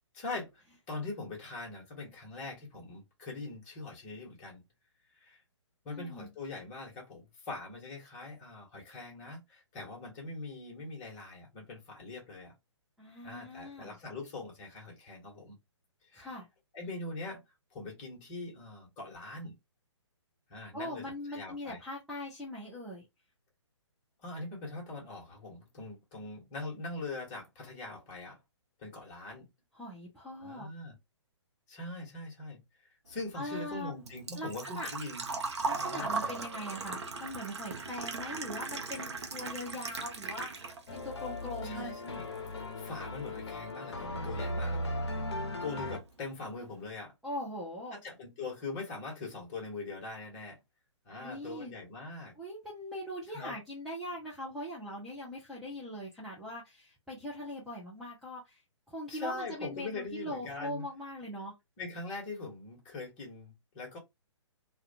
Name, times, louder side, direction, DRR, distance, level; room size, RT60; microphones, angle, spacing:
voice 1, 0.1-4.6 5.1-5.4 5.8-12.5 13.2-15.6 16.1-16.3 16.7-17.4 17.7-19.6 20.5-21.0 21.3-21.8 24.2-28.4 28.8-29.5 30.4-30.9 31.7-35.3 35.7-36.4 41.6-42.3 42.8-45.1 45.6-47.1 47.9-50.6 51.1-52.4 53.3-53.6 59.1-60.8 61.8-64.0, left 3 dB, 25° left, 1.0 m, -42 dB
voice 2, 5.9-6.3 13.0-14.0 16.1-16.5 20.7-23.1 29.7-30.7 33.3-34.0 34.3-34.9 35.6-41.8 47.2-48.0 51.2-51.7 52.4-58.6 58.9-61.5, left 1 dB, ahead, 0.4 m, -41 dB
Engine / Trickle dribble / Fill (with liquid), 33.1-41.0 41.4-42.4 42.7-42.8 44.7-44.8 44.9-45.3 45.6-45.7 46.0-46.1, right 4 dB, 65° right, 0.7 m, -38 dB
sound 1, 40.9-46.0, left 1 dB, 60° left, 0.6 m, -37 dB
2.3 x 2.2 x 2.7 m
figure-of-eight pair, 130°, 16 cm